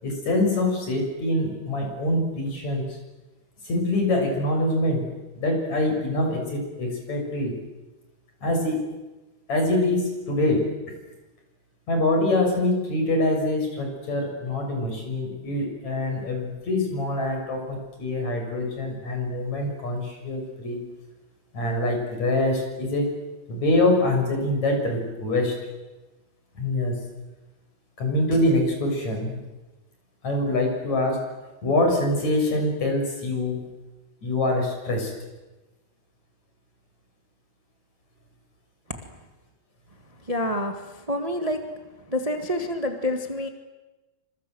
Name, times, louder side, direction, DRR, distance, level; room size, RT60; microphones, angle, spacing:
voice 1, 0.0-3.0 3.6-5.0 5.4-7.5 8.4-8.8 9.5-10.7 11.9-20.8 21.5-23.1 23.5-25.5 26.6-26.9 28.0-29.4 30.2-31.2 31.6-33.6 34.2-35.1, left 1 dB, 45° left, 2 dB, 7.7 m, -24 dB
voice 2, 40.3-40.8 41.1-41.6 42.1-43.5, left 1 dB, 50° right, 5 dB, 0.4 m, -27 dB
27.0 x 26.0 x 7.9 m, 1.1 s
omnidirectional pair, 4.5 m